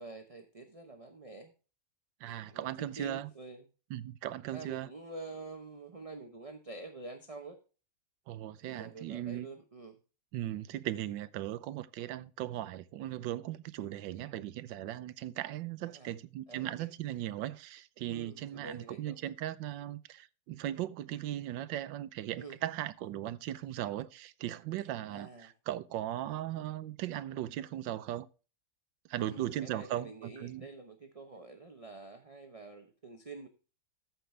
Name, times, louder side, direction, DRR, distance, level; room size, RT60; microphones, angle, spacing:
voice 1, 0.0-1.5 2.3-3.6 4.5-7.6 8.6-10.0 15.8-16.1 16.5-16.9 18.1-19.2 22.4-22.6 25.1-25.5 29.2-33.5, right 3 dB, 30° right, 0.7 m, -47 dB
voice 2, 2.2-3.3 3.9-4.9 8.3-9.5 10.3-28.3 29.1-30.7, right 13 dB, 90° right, 1.4 m, -38 dB
14.0 x 5.9 x 3.3 m
omnidirectional pair, 2.0 m